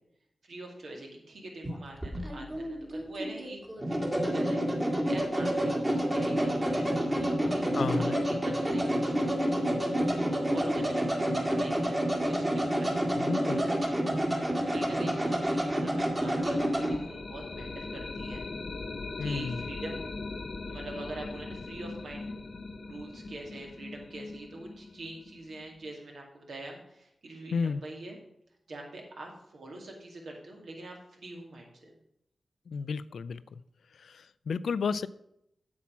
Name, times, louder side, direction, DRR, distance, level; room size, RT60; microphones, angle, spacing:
voice 1, 0.4-3.6 3.9-13.7 14.6-18.4 19.2-20.0 20.7-22.3 22.9-28.2 28.7-31.9, right 2 dB, 75° right, 0 dB, 2.4 m, -44 dB
sound 1, 1.6-17.0, equal, 25° right, 1.9 m, -29 dB
voice 2, 7.8-8.2 13.2-13.6 19.2-19.6 27.5-27.8 32.7-33.4 34.0-35.1, left 5 dB, 85° left, 16 dB, 0.4 m, -32 dB
sound 2, 16.2-25.9, left 3 dB, 60° left, 0.9 m, -40 dB
8.4 x 7.4 x 5.7 m, 0.78 s
wide cardioid pair, 100°, 0 cm